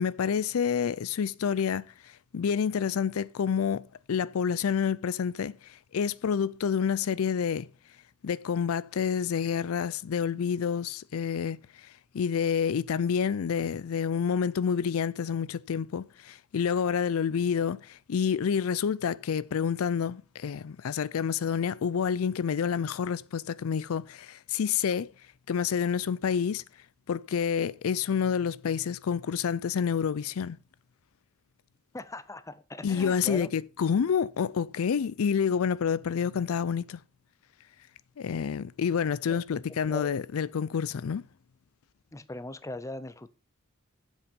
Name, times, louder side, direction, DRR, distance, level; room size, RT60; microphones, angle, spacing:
voice 1, 0.0-7.7 8.2-11.6 12.1-25.1 25.5-26.6 27.1-30.6 32.8-37.0 38.2-41.2, left 7 dB, 80° left, 0.4 m, -28 dB
voice 2, 31.9-33.5 39.3-40.1 42.1-43.3, left 2 dB, 15° left, 0.6 m, -40 dB
8.2 x 7.4 x 5.3 m
head